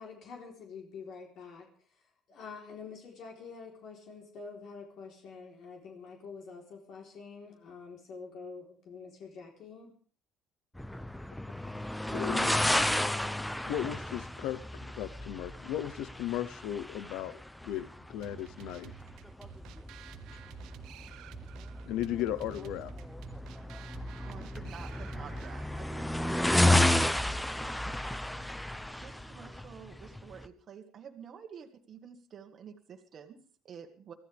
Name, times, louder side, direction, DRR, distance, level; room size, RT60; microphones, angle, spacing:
voice 1, 0.0-1.7 2.3-9.9, left 5 dB, 55° left, 0 dB, 3.9 m, -46 dB
sound 1, 10.8-30.5, left 1 dB, 5° left, 0.7 m, -32 dB
voice 2, 12.1-13.0 13.7-18.9 20.3-20.4 21.9-22.9, left 11 dB, 75° left, 15 dB, 0.9 m, -36 dB
sound 2, 18.2-25.8, right 10 dB, 70° right, 1.0 m, -51 dB
voice 3, 24.2-34.1, right 7 dB, 40° right, 3 dB, 1.8 m, -50 dB
24.5 x 14.5 x 3.6 m, 0.43 s
cardioid pair, 135°, 0 cm